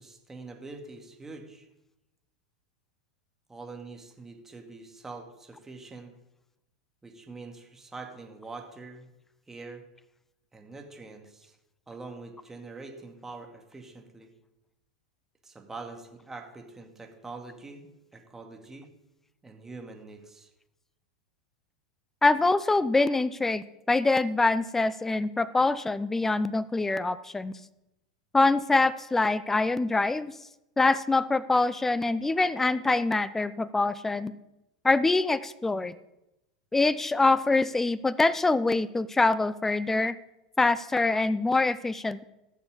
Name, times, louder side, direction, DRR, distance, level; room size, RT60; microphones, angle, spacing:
voice 1, 0.0-1.7 3.5-6.1 7.0-9.1 9.5-9.8 10.5-11.6 11.9-14.3 15.4-18.9 19.4-20.5, right 3 dB, 10° right, 3 dB, 2.3 m, -44 dB
voice 2, 22.2-27.5 28.3-30.3 30.8-34.3 34.8-36.0 36.7-40.2 40.6-42.2, left 3 dB, 10° left, 18 dB, 0.5 m, -24 dB
16.0 x 7.0 x 5.3 m, 0.93 s
hypercardioid pair, 90°, 3 cm